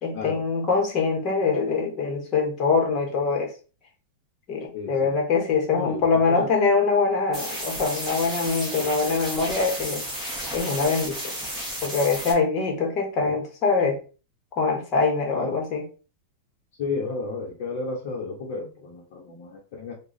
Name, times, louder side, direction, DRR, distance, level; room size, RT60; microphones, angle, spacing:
voice 1, 0.0-3.5 4.5-10.0 10.5-11.3 11.8-14.0 14.6-15.8, left 4 dB, 30° left, 0 dB, 1.1 m, -23 dB
voice 2, 4.7-5.2 5.7-6.3 13.2-13.3 15.3-15.5 16.8-19.9, left 4 dB, 50° left, -3 dB, 0.9 m, -33 dB
sound 1, 7.3-12.3, equal, 5° right, 1.1 m, -33 dB
3.0 x 2.3 x 3.9 m, 0.35 s
supercardioid pair, 160°, 0 cm